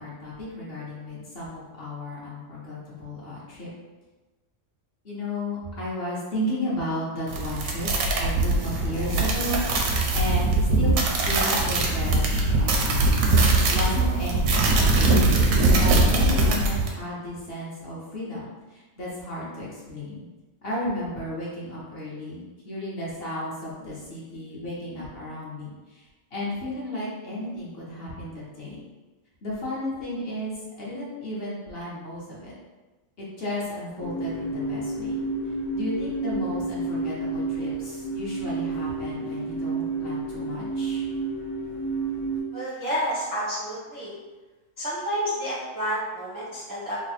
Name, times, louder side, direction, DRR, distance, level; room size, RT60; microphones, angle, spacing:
voice 1, 0.0-3.7 5.0-9.9 10.1-15.3 15.7-20.3 20.6-26.0 26.3-28.8 29.4-32.5 33.2-35.2 35.7-41.0, left 1 dB, 50° left, -6 dB, 1.1 m, -34 dB
sound 1, 7.3-16.9, right 2 dB, 80° right, 1.0 m, -21 dB
sound 2, 34.0-42.4, right 3 dB, 70° left, 1.3 m, -30 dB
voice 2, 42.5-44.1 44.8-47.0, equal, 20° right, -7 dB, 0.5 m, -30 dB
3.4 x 2.2 x 4.1 m, 1.2 s
omnidirectional pair, 1.4 m